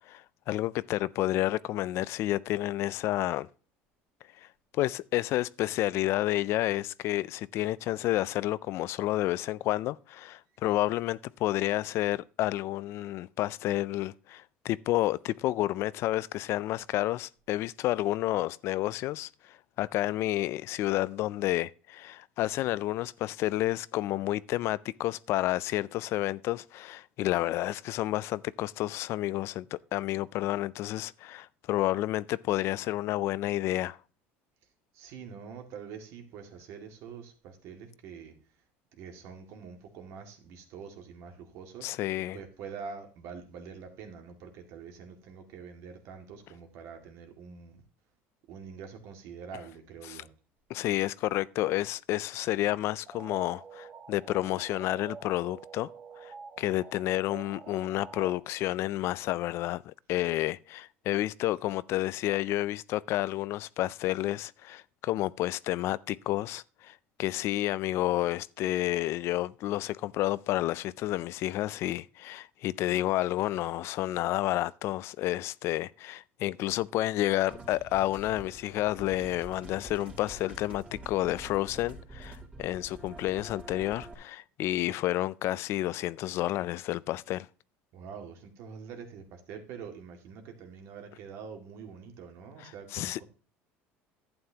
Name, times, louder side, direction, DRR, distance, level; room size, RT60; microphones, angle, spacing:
voice 1, 0.1-3.5 4.4-4.5 4.7-34.0 41.8-42.4 50.1-50.2 50.7-55.9 56.2-87.5 92.9-93.2, left 15 dB, 60° left, 0.4 m, -30 dB
voice 2, 34.9-38.3 39.0-41.9 42.3-47.8 48.5-50.3 87.9-93.2, right 6 dB, 65° right, 2.1 m, -45 dB
sound 1, 53.0-58.4, right 5 dB, 45° right, 2.2 m, -47 dB
sound 2, 77.5-84.1, right 1 dB, 25° right, 2.6 m, -47 dB
11.5 x 8.9 x 2.9 m
cardioid pair, 120°, 5 cm